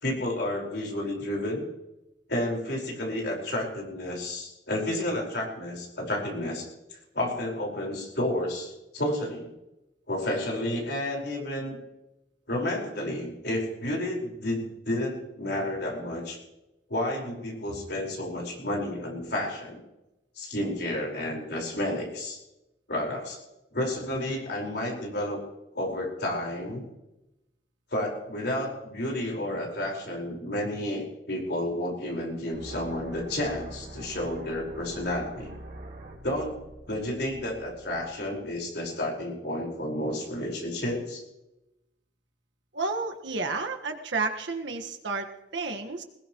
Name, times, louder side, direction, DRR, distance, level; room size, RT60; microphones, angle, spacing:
voice 1, 0.0-1.6 2.3-6.7 7.1-9.5 10.1-11.8 12.5-16.4 16.9-19.8 20.4-22.4 22.9-23.4 23.7-25.4 25.7-26.9 27.9-35.5 36.2-36.6 36.9-41.2, left 1 dB, 65° left, -1 dB, 4.9 m, -31 dB
sound 1, 32.5-38.5, right 1 dB, 50° right, 3.7 m, -45 dB
voice 2, 42.7-46.0, right 3 dB, 80° right, 4 dB, 1.6 m, -31 dB
20.5 x 18.5 x 3.1 m, 0.94 s
head